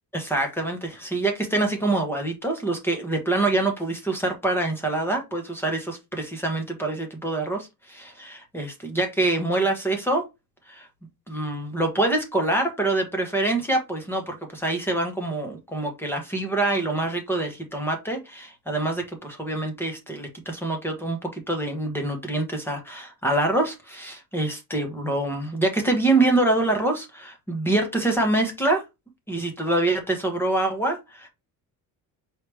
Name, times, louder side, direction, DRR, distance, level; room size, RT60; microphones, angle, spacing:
voice 1, 0.1-10.2 10.7-10.9 11.3-28.8 29.3-31.3, right 2 dB, 5° left, 1.1 m, -25 dB
4.8 x 3.2 x 3.4 m
cardioid pair, 155°, 35 cm